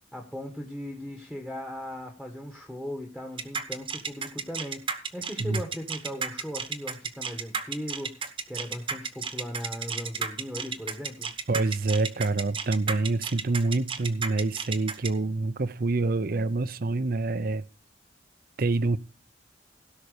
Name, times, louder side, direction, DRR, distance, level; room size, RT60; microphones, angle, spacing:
voice 1, 0.1-11.3, equal, 5° left, 1.3 m, -38 dB
sound 1, 3.4-15.1, right 5 dB, 30° right, 1.1 m, -32 dB
voice 2, 11.5-17.6 18.6-19.0, right 3 dB, 55° right, 0.6 m, -26 dB
16.5 x 5.8 x 5.0 m
head